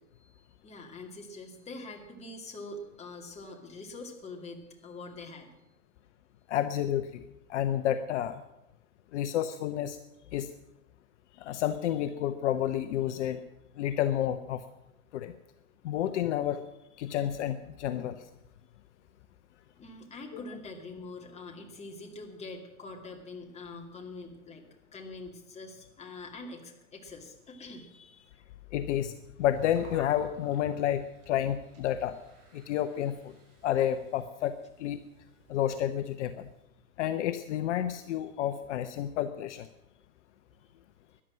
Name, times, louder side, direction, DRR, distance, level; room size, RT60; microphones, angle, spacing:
voice 1, 0.2-5.5 15.8-15.9 19.8-24.6 24.9-28.4, left 2 dB, 15° left, 2 dB, 2.4 m, -44 dB
voice 2, 6.5-7.2 7.5-8.4 9.1-10.0 10.3-10.5 11.4-13.4 13.8-14.6 15.1-15.3 15.8-16.7 17.0-18.3 28.7-29.1 29.4-32.2 32.5-33.3 33.6-35.0 35.5-36.5 37.0-39.7, left 11 dB, 55° left, 10 dB, 0.9 m, -30 dB
Gurgling, 29.4-36.6, right 3 dB, 30° right, 6.3 m, -56 dB
13.5 x 11.0 x 7.5 m, 0.90 s
hypercardioid pair, 130°, 43 cm